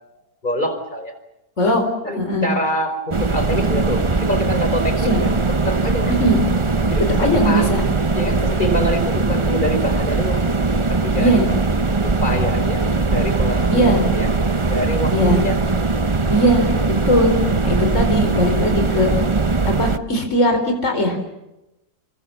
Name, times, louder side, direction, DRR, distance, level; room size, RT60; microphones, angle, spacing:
voice 1, 0.4-1.1 2.0-5.3 5.7-6.4 6.9-7.8 8.1-10.5 11.0-11.5 12.0-14.3 14.7-15.6, equal, 30° left, 7 dB, 4.7 m, -25 dB
voice 2, 2.2-2.5 5.0-5.2 6.2-6.4 7.2-7.8 11.2-11.5 13.7-14.0 15.1-15.4 16.3-16.7 17.1-17.3 17.6-19.1 19.8-21.2, equal, 45° left, 5 dB, 4.6 m, -18 dB
sound 1, 3.1-20.0, right 3 dB, 25° right, 0.7 m, -20 dB
29.0 x 23.5 x 7.2 m, 0.93 s
omnidirectional pair, 1.8 m